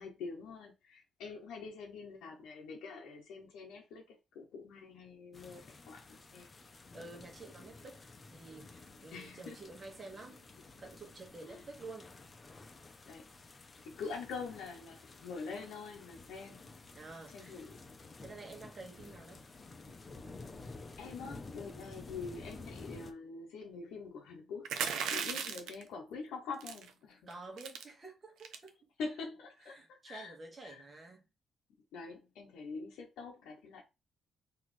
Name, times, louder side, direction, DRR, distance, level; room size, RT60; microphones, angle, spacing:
voice 1, 0.0-6.5 9.1-9.6 11.4-11.6 13.1-13.2 13.8-16.7 17.3-17.8 20.6-27.2 29.0-30.4 30.6-30.8 31.9-33.8, left 4 dB, 85° left, 0.7 m, -45 dB
sound 1, 5.3-23.1, left 3 dB, 30° left, 0.7 m, -52 dB
voice 2, 6.9-8.0 8.3-10.5 10.8-12.1 16.9-17.6 18.2-19.4 25.3-25.6 27.3-28.7 29.6-31.3, right 3 dB, 35° right, 1.5 m, -50 dB
sound 2, 24.6-25.8 26.6-26.9 27.3-27.4 27.6-27.8 28.4-28.7, right 7 dB, 85° right, 0.6 m, -36 dB
4.0 x 2.9 x 3.2 m
cardioid pair, 90°, 0 cm